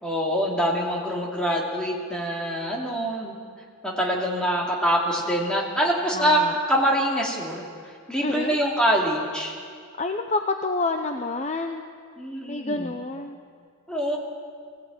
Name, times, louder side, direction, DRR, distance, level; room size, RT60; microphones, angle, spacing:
voice 1, 0.0-3.3 3.8-6.4 6.7-7.6 8.1-9.5 12.2-12.9 13.9-14.2, equal, 5° left, -2 dB, 2.8 m, -24 dB
voice 2, 6.1-6.6 8.2-8.6 10.0-11.8 12.5-13.4, left 3 dB, 30° left, 5 dB, 0.7 m, -28 dB
20.0 x 16.0 x 8.9 m, 2.1 s
head